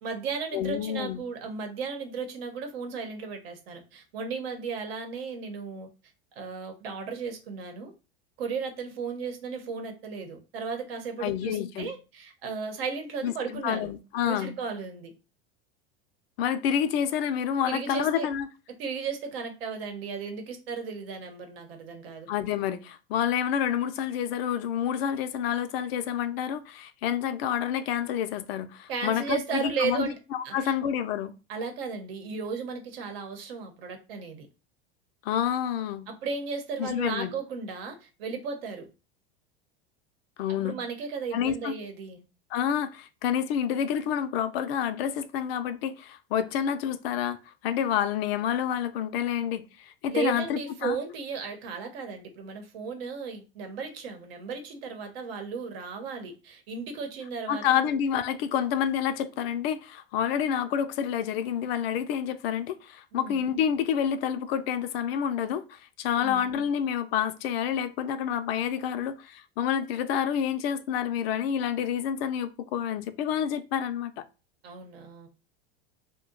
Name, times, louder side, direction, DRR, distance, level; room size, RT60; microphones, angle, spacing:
voice 1, 0.0-5.9 6.4-7.9 8.4-13.9 14.2-15.1 17.6-18.3 18.8-22.3 28.9-30.2 30.4-30.8 31.5-34.5 36.1-38.9 40.5-42.2 50.1-57.9 63.1-63.4 66.1-66.5 74.6-75.3, right 5 dB, 90° right, 0.9 m, -35 dB
voice 2, 0.5-1.2 11.2-11.9 13.2-13.3 13.6-14.6 16.4-18.5 22.3-31.3 35.2-36.1 36.8-37.3 40.4-40.8 41.3-41.7 42.5-47.4 47.6-51.0 57.5-74.2, left 9 dB, 85° left, 0.5 m, -28 dB
2.7 x 2.2 x 3.7 m
supercardioid pair, 145°, 29 cm